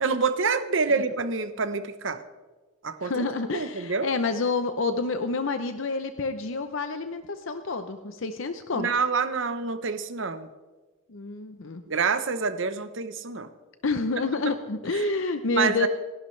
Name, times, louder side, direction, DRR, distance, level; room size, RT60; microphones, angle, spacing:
voice 1, 0.0-2.2 2.8-3.2 3.5-4.1 8.7-10.5 11.9-13.5 14.9-15.1 15.5-15.9, right 4 dB, 60° right, 10 dB, 0.9 m, -27 dB
voice 2, 3.0-8.9 11.1-11.8 13.8-15.9, left 3 dB, 65° left, 9 dB, 0.7 m, -28 dB
28.5 x 11.5 x 3.3 m, 1.3 s
head